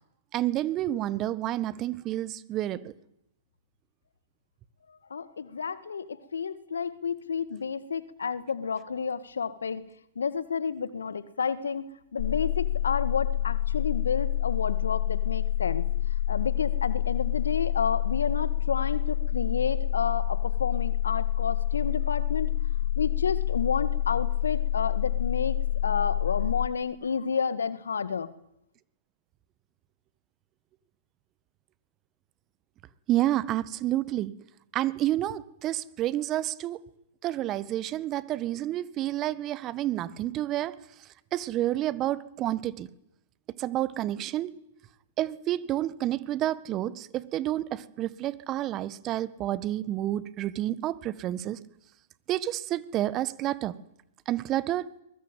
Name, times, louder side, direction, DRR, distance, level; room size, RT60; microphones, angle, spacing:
voice 1, 0.3-2.9 33.1-34.3 34.7-36.8 37.2-40.7 41.3-42.9 43.6-44.5 45.2-51.6 52.3-53.7 54.2-54.9, right 14 dB, 30° right, 18 dB, 1.6 m, -29 dB
voice 2, 5.1-9.8 10.2-15.9 16.3-22.5 23.0-25.6 25.8-28.3, left 6 dB, 80° left, 15 dB, 1.9 m, -30 dB
sound 1, 12.2-26.7, left 13 dB, 55° left, 1.8 m, -27 dB
23.5 x 21.0 x 9.3 m, 0.79 s
hypercardioid pair, 115°, 0 cm